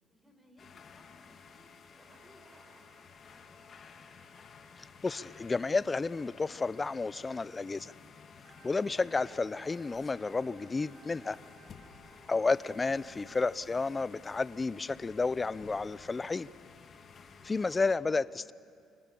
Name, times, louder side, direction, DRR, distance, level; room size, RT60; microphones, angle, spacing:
voice 1, 0.1-0.7 0.9-2.7 3.2-3.8, equal, ahead, 1 dB, 5.8 m, -63 dB
sound 1, 0.6-18.0, left 5 dB, 50° left, 2.3 m, -54 dB
Thunder, 1.8-5.6, right 2 dB, 40° right, 6.3 m, -66 dB
voice 2, 4.8-7.9 8.6-11.4 12.3-16.5 17.4-18.5, left 3 dB, 25° left, 19 dB, 0.6 m, -31 dB
sound 2, 8.4-13.4, right 4 dB, 65° right, 3.0 m, -61 dB
30.0 x 25.5 x 7.1 m, 2.4 s
supercardioid pair, 75°, 0 cm